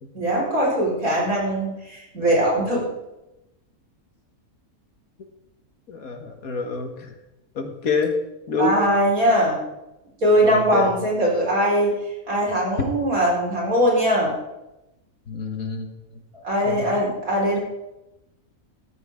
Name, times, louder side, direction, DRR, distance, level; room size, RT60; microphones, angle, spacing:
voice 1, 0.1-2.9 8.6-9.6 10.2-11.9 12.3-14.3 16.4-17.6, equal, 75° right, -3 dB, 4.9 m, -21 dB
voice 2, 5.9-7.1 7.6-8.1 8.5-8.7 10.4-10.9 15.3-15.9 16.6-16.9, left 4 dB, 75° left, 5 dB, 2.0 m, -27 dB
14.5 x 13.5 x 3.7 m, 0.94 s
omnidirectional pair, 1.5 m